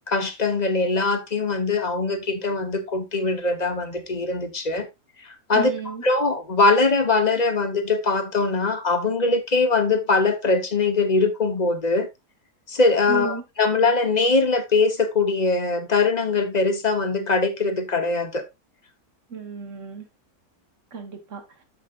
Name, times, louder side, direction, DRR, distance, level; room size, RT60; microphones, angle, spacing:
voice 1, 0.1-4.9 5.2-5.7 6.0-12.1 12.7-18.4, left 3 dB, 30° left, 1.2 m, -22 dB
voice 2, 5.5-6.0 13.1-13.4 19.3-20.1 20.9-21.4, right 4 dB, 55° right, 2.0 m, -32 dB
13.5 x 5.1 x 2.5 m
omnidirectional pair, 1.6 m